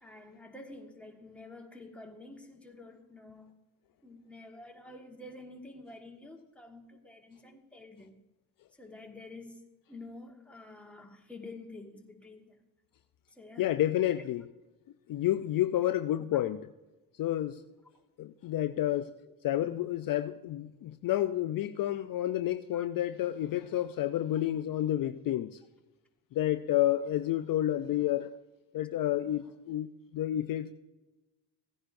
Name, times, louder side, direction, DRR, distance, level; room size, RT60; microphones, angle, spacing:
voice 1, 0.0-3.6 4.0-8.2 8.7-9.6 9.9-12.6 13.3-13.7 14.1-14.2 19.2-19.3 22.7-22.8, left 2 dB, 5° left, 1.6 m, -49 dB
voice 2, 13.6-14.4 15.1-16.6 17.2-17.6 18.2-19.1 19.4-25.6 26.3-28.3 28.7-30.7, left 13 dB, 55° left, 0.5 m, -30 dB
16.0 x 10.0 x 2.6 m
cardioid pair, 90°, 42 cm